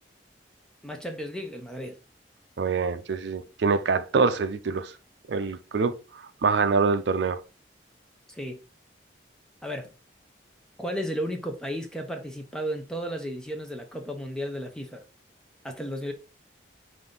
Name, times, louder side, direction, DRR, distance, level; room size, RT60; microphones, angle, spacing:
voice 1, 0.8-2.0 8.3-8.6 9.6-9.9 10.8-15.0 15.6-16.1, equal, 5° left, 0.5 m, -34 dB
voice 2, 2.6-4.9 5.3-5.9 6.4-7.4, right 4 dB, 70° right, 0.5 m, -25 dB
5.3 x 2.6 x 3.8 m
head